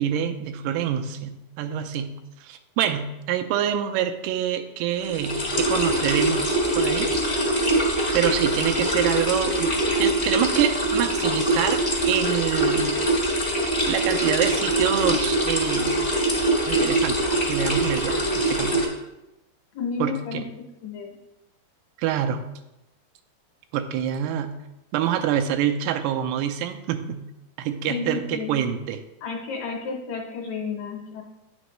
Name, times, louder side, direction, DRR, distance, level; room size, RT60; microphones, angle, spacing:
voice 1, 0.0-2.2 2.4-7.1 8.1-9.7 10.0-11.8 12.1-12.9 13.9-15.9 16.7-18.9 20.0-20.5 22.0-22.4 23.7-24.5 24.9-27.2 27.6-29.0, right 10 dB, 90° right, 7 dB, 2.6 m, -26 dB
sound 1, 5.0-18.9, right 1 dB, 40° left, 0.4 m, -23 dB
voice 2, 19.7-20.5 20.8-21.2 27.9-28.5 29.2-31.2, left 5 dB, 70° left, 1 dB, 2.3 m, -31 dB
9.8 x 6.2 x 3.1 m, 0.92 s
omnidirectional pair, 4.6 m